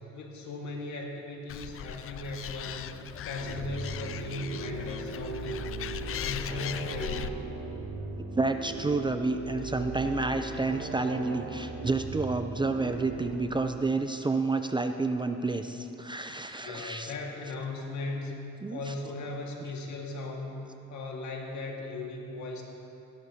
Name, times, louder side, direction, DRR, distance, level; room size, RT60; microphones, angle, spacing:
voice 1, 0.1-2.9 3.3-5.7 6.0-7.3 16.6-18.3 18.7-20.6 20.9-22.6, left 2 dB, 70° left, 0 dB, 1.8 m, -37 dB
Animal, 1.5-7.3, left 9 dB, 50° left, 0.4 m, -39 dB
sound 1, 3.4-13.4, right 3 dB, 80° right, 1.6 m, -39 dB
voice 2, 8.3-17.1 18.6-18.9, right 3 dB, 15° right, 7 dB, 0.4 m, -30 dB
16.0 x 12.0 x 2.8 m, 2.8 s
cardioid pair, 90°, 30 cm